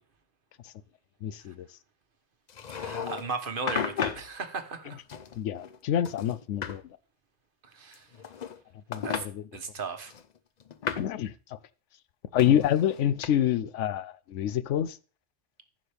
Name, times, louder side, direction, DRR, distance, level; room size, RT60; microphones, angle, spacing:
voice 1, 1.2-1.7 5.4-6.8 8.9-9.4 11.0-11.6 12.3-15.0, left 10 dB, 85° left, 0.9 m, -27 dB
sound 1, 2.5-3.3 3.7-4.3 5.1-5.8 6.0-6.8 7.9-8.6 8.9-9.3 10.1-11.2 12.4-13.3, left 7 dB, 50° left, 0.6 m, -34 dB
voice 2, 2.7-5.0 7.7-8.1 9.0-9.3 9.5-10.1, right 4 dB, 50° right, 1.1 m, -36 dB
14.5 x 6.2 x 3.4 m
omnidirectional pair, 1.2 m